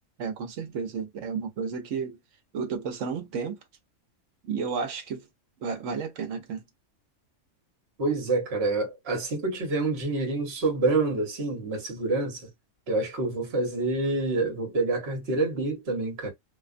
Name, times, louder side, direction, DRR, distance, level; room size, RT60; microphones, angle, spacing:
voice 1, 0.2-2.2 2.5-3.6 4.4-5.3 5.6-6.6, right 5 dB, 75° right, 1.0 m, -32 dB
voice 2, 8.0-12.5 12.9-16.3, right 3 dB, 55° right, 1.2 m, -27 dB
2.5 x 2.3 x 2.4 m
omnidirectional pair, 1.3 m